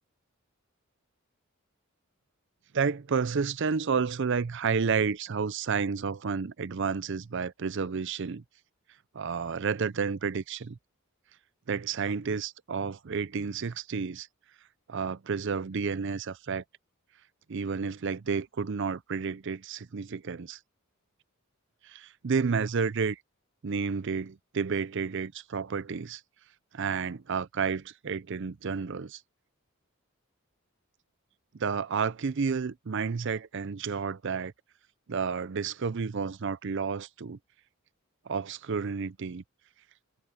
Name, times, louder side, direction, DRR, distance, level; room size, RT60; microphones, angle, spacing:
voice 1, 2.7-8.4 9.1-10.8 11.7-14.3 14.9-16.6 17.5-20.6 21.8-23.2 23.6-26.2 26.7-29.2 31.5-34.5 35.1-37.4 38.3-39.4, right 5 dB, 55° right, 0.5 m, -31 dB
head